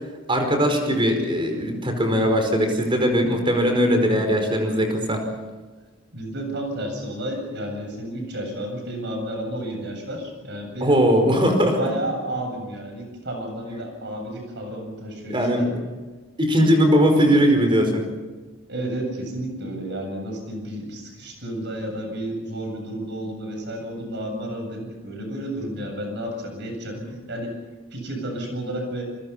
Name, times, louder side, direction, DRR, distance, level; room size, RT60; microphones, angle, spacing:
voice 1, 0.3-5.2 10.8-11.9 15.3-15.7 16.4-18.0 27.0-27.1, equal, 25° right, 4 dB, 5.1 m, -20 dB
voice 2, 6.1-11.0 11.8-15.7 18.7-27.0 27.3-27.5 27.9-29.1, right 1 dB, 60° right, 3 dB, 7.8 m, -31 dB
27.0 x 22.5 x 5.8 m, 1.3 s
head